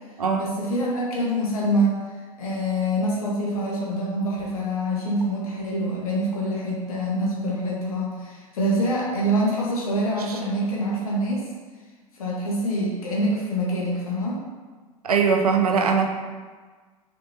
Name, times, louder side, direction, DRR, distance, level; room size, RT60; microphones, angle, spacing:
voice 1, 0.3-2.0 2.4-11.5 12.2-14.4, equal, 70° left, -4 dB, 1.6 m, -25 dB
voice 2, 15.0-16.1, right 5 dB, 80° right, 3 dB, 0.7 m, -21 dB
6.3 x 5.3 x 2.9 m, 1.4 s
figure-of-eight pair, 80°, 19 cm